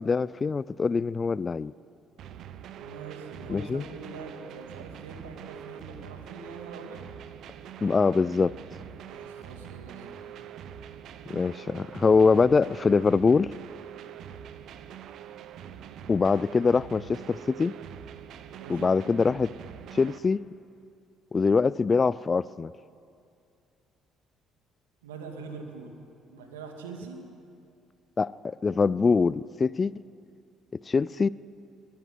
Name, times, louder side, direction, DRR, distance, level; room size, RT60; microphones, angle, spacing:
voice 1, 0.0-1.7 3.5-3.8 7.8-8.6 11.3-13.5 16.1-17.7 18.7-19.5 19.9-20.4 21.3-22.7 28.2-29.9 30.9-31.3, left 4 dB, 35° left, 20 dB, 0.4 m, -23 dB
sound 1, 2.2-20.2, right 9 dB, 65° right, 1.0 m, -44 dB
voice 2, 2.8-7.0 9.1-10.3 18.5-18.9 25.0-25.9 26.3-27.2, right 4 dB, 85° right, 3 dB, 2.4 m, -43 dB
21.5 x 13.0 x 9.6 m, 2.4 s
hypercardioid pair, 55°, 0 cm